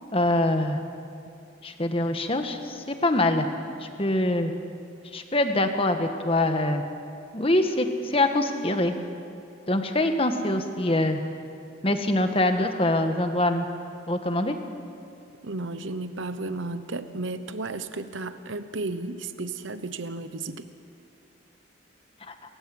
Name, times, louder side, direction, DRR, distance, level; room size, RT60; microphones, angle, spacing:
voice 1, 0.1-0.8 1.6-3.5 3.8-4.5 5.1-6.8 7.3-8.9 9.7-11.2 11.8-13.7 14.1-14.5 22.3-22.4, left 1 dB, 30° left, 6 dB, 1.5 m, -24 dB
voice 2, 15.4-20.7, right 2 dB, 80° right, 11 dB, 1.0 m, -33 dB
28.5 x 15.5 x 7.8 m, 2.5 s
head